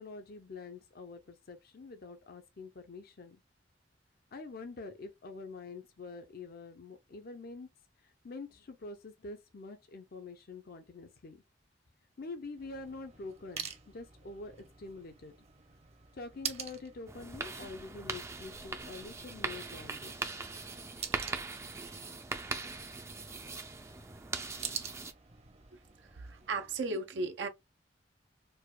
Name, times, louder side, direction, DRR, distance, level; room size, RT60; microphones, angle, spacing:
voice 1, 0.0-3.4 4.3-7.7 8.0-11.4 12.2-15.4 16.1-20.1 21.4-21.5, left 3 dB, 55° left, 0.6 m, -46 dB
sound 1, 12.6-26.8, right 7 dB, 35° right, 0.7 m, -47 dB
sound 2, 17.1-25.1, right 3 dB, 15° right, 0.4 m, -40 dB
voice 2, 26.1-27.5, right 3 dB, 75° right, 0.5 m, -35 dB
4.7 x 2.3 x 2.2 m
head